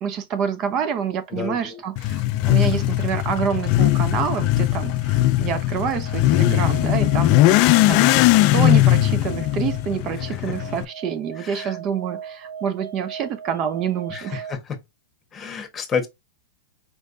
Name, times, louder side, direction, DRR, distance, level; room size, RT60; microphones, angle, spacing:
voice 1, 0.0-7.4 7.9-8.1 8.5-14.4, right 8 dB, 35° right, 0.6 m, -27 dB
sound 1, 1.2-14.5, right 8 dB, 85° right, 2.4 m, -41 dB
voice 2, 1.3-1.8 8.0-8.3 10.3-10.4 11.4-11.8 14.1-14.8 15.3-16.1, left 6 dB, 20° left, 1.3 m, -30 dB
Motorcycle / Accelerating revving vroom, 2.0-10.8, left 16 dB, 45° left, 0.4 m, -19 dB
4.6 x 3.2 x 2.7 m
hypercardioid pair, 125°, 0 cm